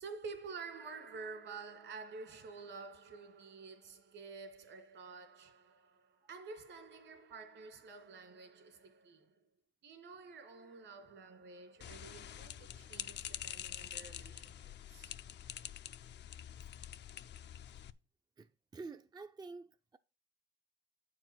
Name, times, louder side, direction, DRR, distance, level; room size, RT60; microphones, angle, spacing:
voice 1, 0.0-9.4 9.8-15.2, right 4 dB, 70° right, 2.5 m, -50 dB
sound 1, 11.8-17.9, left 10 dB, 60° left, 0.6 m, -46 dB
voice 2, 18.4-20.0, right 4 dB, 20° right, 0.4 m, -50 dB
8.7 x 4.8 x 6.1 m
cardioid pair, 90°, 20 cm